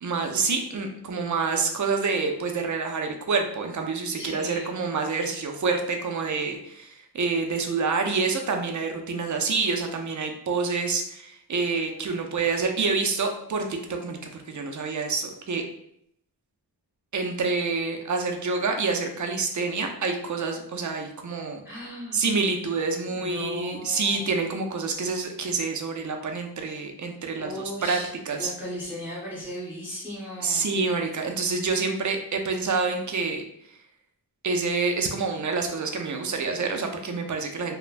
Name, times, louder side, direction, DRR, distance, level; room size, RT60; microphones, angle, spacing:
voice 1, 0.0-14.2 14.5-15.6 17.1-21.8 22.1-28.0 28.3-28.5 30.4-33.4 34.4-37.8, right 4 dB, 50° right, 4 dB, 0.5 m, -27 dB
voice 2, 4.2-4.7 21.6-22.2 23.1-24.3 27.4-28.1 28.4-30.7, left 1 dB, 5° right, -8 dB, 0.9 m, -36 dB
3.2 x 2.1 x 2.4 m, 0.71 s
wide cardioid pair, 100°, 40 cm